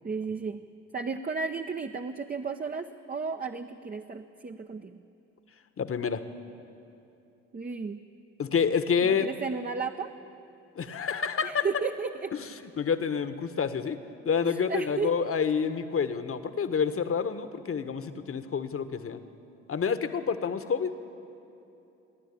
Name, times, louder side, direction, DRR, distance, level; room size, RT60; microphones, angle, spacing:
voice 1, 0.0-0.6 0.9-5.0 7.5-8.0 9.0-10.1 11.4-12.3 14.7-15.3, right 5 dB, 25° right, 4 dB, 0.9 m, -33 dB
voice 2, 5.8-6.2 8.4-9.3 10.8-11.7 12.3-12.5 12.7-14.0 14.2-19.2 19.7-21.0, left 6 dB, 40° left, 10 dB, 1.5 m, -28 dB
29.5 x 11.5 x 8.7 m, 2.9 s
hypercardioid pair, 50°, 34 cm